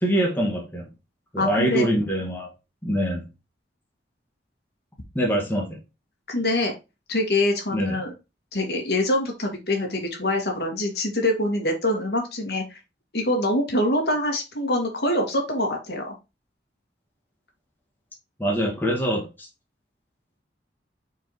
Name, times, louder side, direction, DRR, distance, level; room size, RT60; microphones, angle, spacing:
voice 1, 0.0-0.8 1.3-2.5 2.8-3.2 5.2-5.8 7.7-8.0 18.4-19.5, right 1 dB, 10° left, 1.8 m, -24 dB
voice 2, 1.4-1.9 6.3-6.7 7.1-8.1 8.5-12.8 13.1-16.1, left 1 dB, 65° left, 2.1 m, -24 dB
5.0 x 4.7 x 4.8 m
head